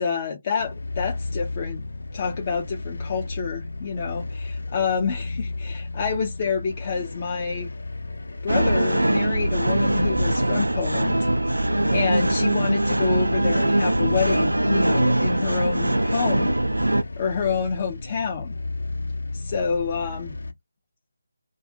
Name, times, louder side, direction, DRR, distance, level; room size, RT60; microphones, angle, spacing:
voice 1, 0.0-1.8 2.1-4.2 4.7-7.7 8.4-16.6 16.8-18.6 19.3-20.4, left 5 dB, 30° left, 0.4 m, -28 dB
sound 1, 0.6-20.5, left 3 dB, 70° left, 0.7 m, -33 dB
sound 2, 8.5-17.0, right 1 dB, 85° right, 0.3 m, -22 dB
2.3 x 2.3 x 2.5 m
figure-of-eight pair, 155°, 0 cm